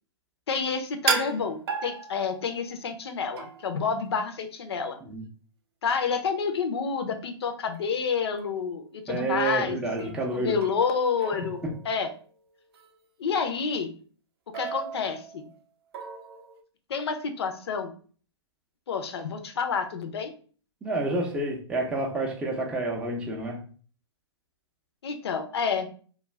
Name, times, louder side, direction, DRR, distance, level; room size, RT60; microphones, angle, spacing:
voice 1, 0.5-5.0 5.8-12.1 13.2-13.9 14.5-15.5 16.9-17.9 18.9-20.3 25.0-25.9, left 5 dB, 65° left, 7 dB, 0.6 m, -29 dB
sound 1, 1.1-2.7 3.4-3.8 7.7-7.8 8.4-8.7 10.0-11.0 11.2-12.3 12.7-13.0 14.5-15.5 15.9-16.6, right 5 dB, 60° right, 0.5 m, -34 dB
voice 2, 9.1-10.6 20.8-23.6, right 2 dB, 5° right, -1 dB, 0.5 m, -29 dB
2.3 x 2.1 x 3.2 m, 0.42 s
hypercardioid pair, 125°, 15 cm